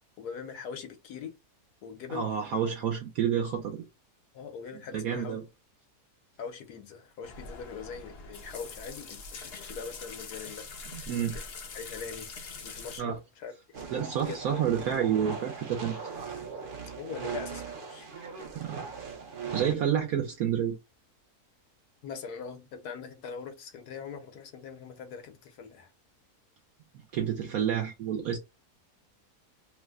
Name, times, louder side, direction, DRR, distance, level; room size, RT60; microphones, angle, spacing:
voice 1, 0.2-1.3 1.8-2.3 4.3-5.4 6.4-10.6 11.2-11.5 11.7-12.3 12.6-13.5 14.3-14.4 17.0-18.1 22.0-25.9, left 6 dB, 75° left, 1.3 m, -41 dB
voice 2, 2.1-3.8 4.9-5.4 10.9-11.4 13.0-13.2 13.9-16.3 18.5-18.9 19.5-20.8 27.1-28.4, right 8 dB, 70° right, 1.1 m, -29 dB
sound 1, 7.2-13.0, left 4 dB, 55° left, 0.8 m, -43 dB
sound 2, 13.7-19.7, right 5 dB, 50° right, 0.6 m, -40 dB
3.1 x 2.1 x 3.5 m
omnidirectional pair, 1.7 m